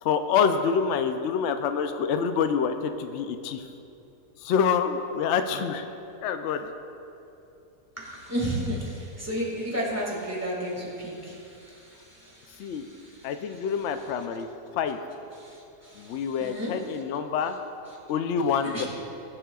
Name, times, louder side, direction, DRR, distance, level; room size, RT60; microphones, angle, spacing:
voice 1, 0.0-3.7 4.4-5.8 6.2-6.7 12.6-12.9 13.2-14.5 14.7-15.0 15.9-17.6 18.1-18.8, left 6 dB, 80° left, 8 dB, 0.6 m, -26 dB
voice 2, 8.0-13.5 15.4-16.8 18.7-18.9, equal, 10° right, -4 dB, 1.9 m, -33 dB
18.5 x 7.5 x 2.3 m, 2.8 s
omnidirectional pair, 1.8 m